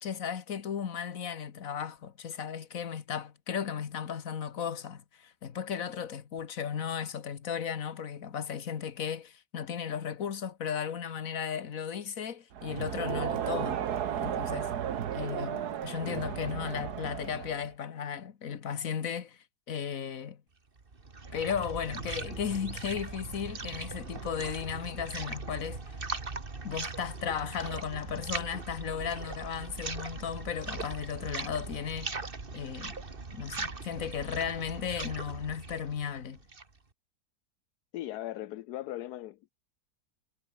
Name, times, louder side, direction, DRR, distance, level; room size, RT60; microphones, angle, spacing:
voice 1, 0.0-13.8 14.2-14.8 15.1-20.4 21.3-25.9 26.6-32.1 32.5-33.0 33.3-36.4, left 7 dB, 60° left, 1.8 m, -35 dB
Crowd, 12.5-17.7, right 9 dB, 85° right, 1.7 m, -34 dB
sound 1, 20.8-36.8, right 3 dB, 35° right, 2.2 m, -40 dB
voice 2, 37.9-39.5, left 14 dB, 80° left, 1.2 m, -38 dB
omnidirectional pair, 1.7 m